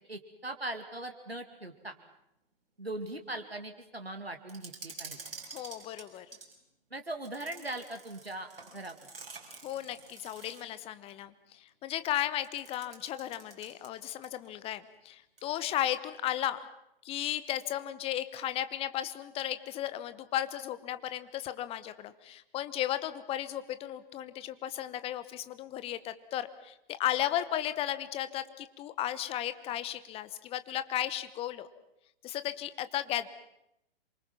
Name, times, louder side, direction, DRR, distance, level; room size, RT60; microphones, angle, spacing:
voice 1, 0.1-2.0 2.8-5.2 6.9-9.0, right 2 dB, 90° right, 6 dB, 2.4 m, -40 dB
sound 1, 4.5-6.6 7.3-10.8 12.4-14.5 14.7-14.8 15.4-15.8, right 4 dB, 70° right, 6.0 m, -48 dB
voice 2, 5.5-6.3 9.6-16.7 17.0-31.7 32.2-33.3, left 12 dB, 20° left, 13 dB, 1.0 m, -35 dB
27.0 x 24.5 x 5.9 m, 0.82 s
figure-of-eight pair, 115°, 30 cm